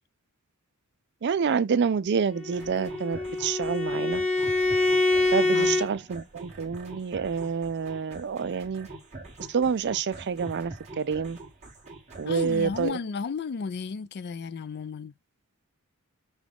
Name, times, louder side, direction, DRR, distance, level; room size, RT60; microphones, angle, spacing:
voice 1, 1.2-4.2 5.3-8.9 9.5-11.4 12.2-13.0, right 6 dB, 50° right, 0.4 m, -28 dB
Bowed string instrument, 2.3-5.9, left 2 dB, 30° left, 1.1 m, -25 dB
sound 1, 2.5-12.9, right 2 dB, 30° right, 1.9 m, -45 dB
voice 2, 12.3-15.1, left 5 dB, 50° left, 0.4 m, -33 dB
6.1 x 2.4 x 3.4 m
head